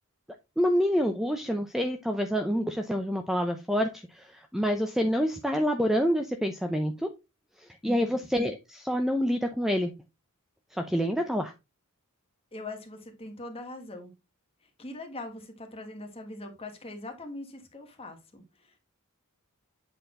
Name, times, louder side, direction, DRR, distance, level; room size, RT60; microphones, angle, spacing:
voice 1, 0.6-7.1 7.8-9.9 10.7-11.5, equal, ahead, 0.6 m, -27 dB
voice 2, 7.8-8.2 12.5-14.1 14.8-18.8, left 2 dB, 25° left, 1.6 m, -41 dB
8.0 x 4.3 x 3.7 m
head